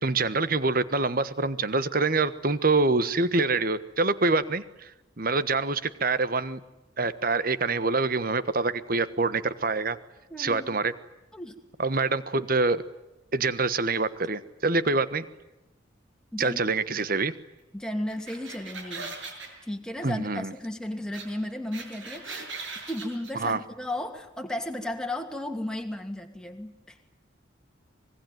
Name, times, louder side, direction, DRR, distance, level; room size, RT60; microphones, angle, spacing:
voice 1, 0.0-4.9 5.2-6.6 7.0-10.0 10.4-10.9 11.8-12.8 13.3-15.3 16.4-17.3 20.0-20.5 23.4-23.6, right 3 dB, 50° right, 14 dB, 1.3 m, -25 dB
voice 2, 10.3-10.8 11.3-11.6 16.3-16.6 16.9-17.0 17.7-19.2 19.7-22.5 22.9-27.0, left 1 dB, 5° left, 4 dB, 2.6 m, -34 dB
sound 1, 18.1-19.5 21.1-21.2 21.5-23.3, right 4 dB, 75° right, 6.9 m, -39 dB
25.5 x 21.0 x 9.3 m, 0.95 s
head